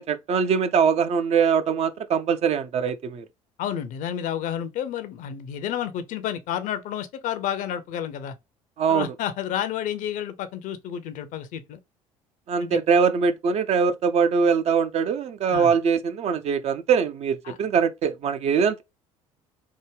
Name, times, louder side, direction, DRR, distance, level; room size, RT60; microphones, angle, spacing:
voice 1, 0.0-3.2 8.8-9.1 12.5-18.8, right 6 dB, 40° right, 0.4 m, -22 dB
voice 2, 3.6-8.3 8.9-11.8 12.6-12.8 15.5-15.7 17.4-17.6, left 10 dB, 50° left, 0.5 m, -30 dB
3.4 x 2.1 x 3.2 m
figure-of-eight pair, 60°, 17 cm